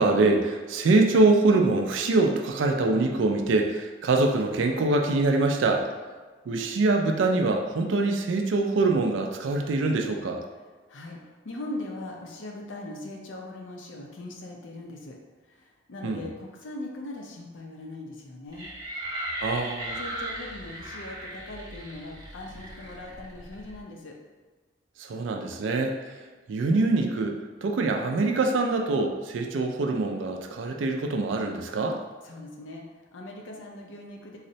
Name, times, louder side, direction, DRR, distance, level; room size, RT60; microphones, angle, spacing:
voice 1, 0.0-5.8 6.5-10.4 16.0-16.2 19.4-20.0 25.0-26.1 26.5-32.0, right 3 dB, 75° right, 3 dB, 0.4 m, -24 dB
voice 2, 10.9-15.2 15.5-18.7 20.0-24.1 32.2-34.4, left 2 dB, 80° left, 0 dB, 0.5 m, -40 dB
sound 1, 18.5-23.8, right 1 dB, 20° right, 0.6 m, -37 dB
4.0 x 2.1 x 2.7 m, 1.4 s
head